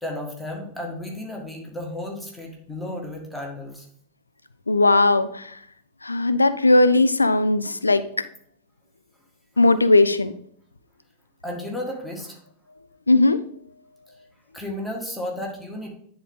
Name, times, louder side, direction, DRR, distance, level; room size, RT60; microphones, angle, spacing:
voice 1, 0.0-3.8 11.4-12.4 14.5-15.9, left 1 dB, 5° left, -1 dB, 1.6 m, -33 dB
voice 2, 4.7-5.6 6.0-8.3 9.6-10.3 13.1-13.4, left 2 dB, 80° left, 13 dB, 0.4 m, -18 dB
9.8 x 3.9 x 3.6 m, 0.65 s
figure-of-eight pair, 90°, 0 cm